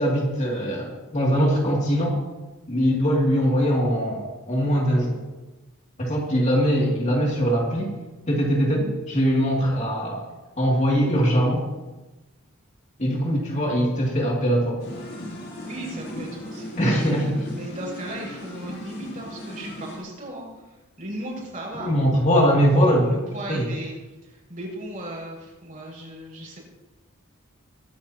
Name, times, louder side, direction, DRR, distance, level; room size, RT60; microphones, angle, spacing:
voice 1, 0.0-2.2 2.7-5.2 6.0-7.9 8.3-10.2 10.6-11.6 13.0-14.8 16.8-17.5 21.8-23.1 23.5-23.6, equal, 35° left, -2 dB, 2.5 m, -21 dB
sound 1, 14.8-20.0, equal, 50° left, 5.1 m, -37 dB
voice 2, 15.6-21.9 23.0-23.9 24.2-26.6, right 1 dB, 40° right, -3 dB, 6.0 m, -37 dB
22.5 x 12.0 x 2.9 m, 1.1 s
head